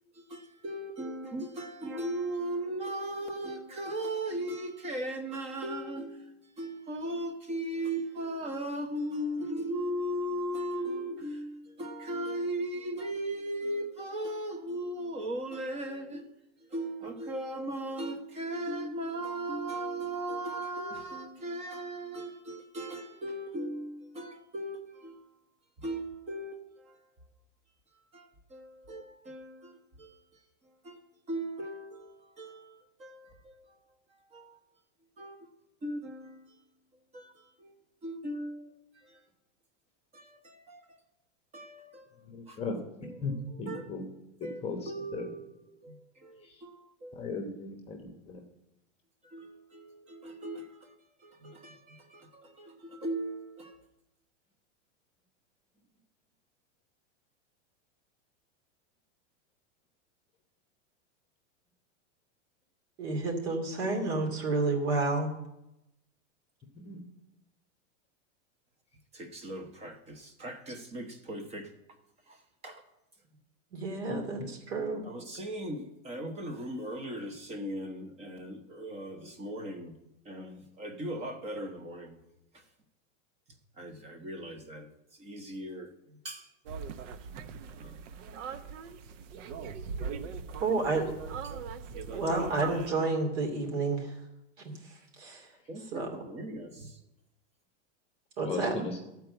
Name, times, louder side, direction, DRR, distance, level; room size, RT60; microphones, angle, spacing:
voice 1, 0.1-16.3 16.6-25.3 25.8-27.1 28.1-31.0 31.3-33.8 34.1-34.6 35.2-35.5 35.8-36.6 37.1-37.7 38.0-39.2 40.1-41.0 41.5-42.6 43.0-43.9 44.4-47.3 49.2-53.8 69.1-71.7 72.3-72.8 75.0-80.0 80.2-82.2 82.5-82.6 83.8-86.5 87.7-88.1 89.6-89.7 91.4-91.5 92.0-92.5 95.7-97.0, right 1 dB, 15° right, 0.8 m, -38 dB
voice 2, 42.2-42.8 43.2-44.0 44.4-45.3 46.4-46.6 47.1-48.0 48.2-48.4 66.8-67.0 74.1-74.2 98.4-99.0, left 3 dB, 15° left, 1.0 m, -37 dB
voice 3, 63.0-65.3 73.7-74.4 74.7-75.0 90.6-91.1 92.1-94.1 94.6-94.7 95.2-95.5 95.9-96.1 98.4-98.7, right 3 dB, 60° right, 2.7 m, -30 dB
sound 1, 86.7-92.9, right 6 dB, 75° right, 0.8 m, -40 dB
12.5 x 4.6 x 7.9 m
supercardioid pair, 160°, 37 cm